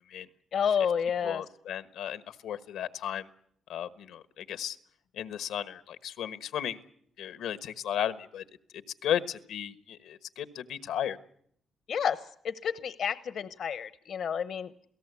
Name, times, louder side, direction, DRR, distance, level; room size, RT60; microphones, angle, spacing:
voice 1, 0.5-1.4 11.9-12.2 12.4-14.7, left 7 dB, 60° left, 14 dB, 0.9 m, -30 dB
voice 2, 1.2-3.3 3.7-4.8 5.1-6.8 7.2-8.4 9.0-11.2, left 10 dB, 85° left, 13 dB, 1.3 m, -34 dB
28.0 x 17.5 x 8.3 m, 0.68 s
cardioid pair, 90°, 0 cm